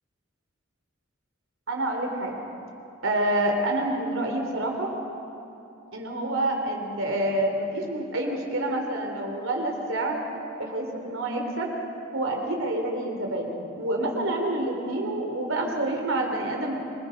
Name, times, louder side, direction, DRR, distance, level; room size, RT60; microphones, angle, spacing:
voice 1, 1.7-2.4 3.0-4.9 5.9-10.2 10.6-11.7 12.1-13.5 13.8-16.7, right 1 dB, 80° right, 2 dB, 3.3 m, -27 dB
25.5 x 19.5 x 5.2 m, 2.8 s
head